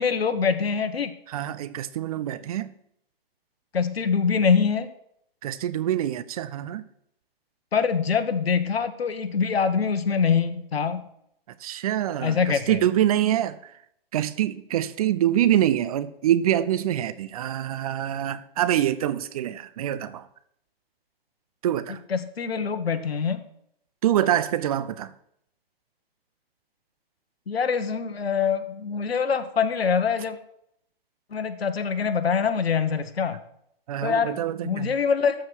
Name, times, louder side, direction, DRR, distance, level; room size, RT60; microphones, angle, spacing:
voice 1, 0.0-1.2 3.7-4.9 7.7-11.0 12.2-12.8 22.1-23.4 27.5-30.4 31.3-33.4 34.0-34.4 34.6-35.3, left 6 dB, 80° left, 1.3 m, -24 dB
voice 2, 1.3-2.7 5.4-6.8 11.6-13.6 14.1-20.2 21.6-22.0 24.0-25.1 33.9-34.9, right 11 dB, 40° right, 0.6 m, -25 dB
13.5 x 5.1 x 6.2 m
hypercardioid pair, 140°, 30 cm